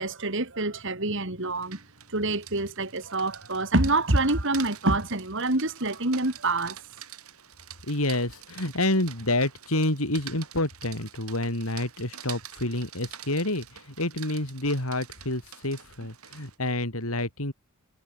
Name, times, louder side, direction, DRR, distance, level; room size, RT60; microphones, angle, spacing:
voice 1, 0.0-1.8 2.1-6.8, right 2 dB, 55° right, 3.2 m, -26 dB
Rain, 1.4-16.6, right 10 dB, 80° right, 7.1 m, -46 dB
voice 2, 7.9-17.5, left 1 dB, 75° left, 6.2 m, -28 dB
head